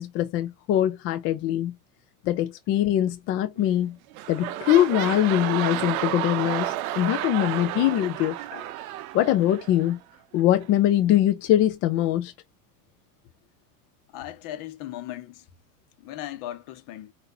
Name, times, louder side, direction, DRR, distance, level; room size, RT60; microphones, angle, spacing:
voice 1, 0.0-1.7 2.2-4.0 4.3-8.7 9.1-10.0 10.3-12.3, left 12 dB, 30° left, 0.4 m, -23 dB
sound 1, 3.6-3.8 4.1-9.9 10.6-10.7, right 15 dB, 65° right, 0.7 m, -31 dB
voice 2, 14.1-15.5 16.0-17.1, left 13 dB, 45° left, 1.1 m, -37 dB
5.6 x 2.7 x 2.6 m
supercardioid pair, 120°, 46 cm